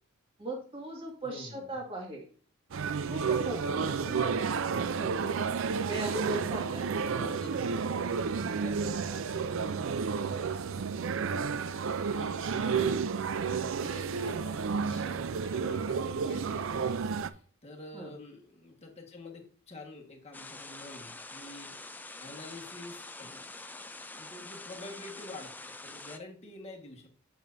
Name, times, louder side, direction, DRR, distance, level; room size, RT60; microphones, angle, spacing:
voice 1, 0.4-2.3 3.1-4.3 4.8-5.3 5.6-7.4 17.9-18.1, right 1 dB, 25° right, -1 dB, 2.0 m, -39 dB
voice 2, 1.2-1.8 3.8-4.3 7.1-7.7 8.5-13.0 13.3-21.8 22.2-23.4 24.2-27.1, left 2 dB, 30° left, 1 dB, 1.5 m, -48 dB
sound 1, 2.7-17.3, right 5 dB, 60° right, 0.4 m, -31 dB
sound 2, 20.3-26.2, left 2 dB, 10° left, 0.3 m, -45 dB
9.0 x 6.3 x 2.6 m, 0.43 s
head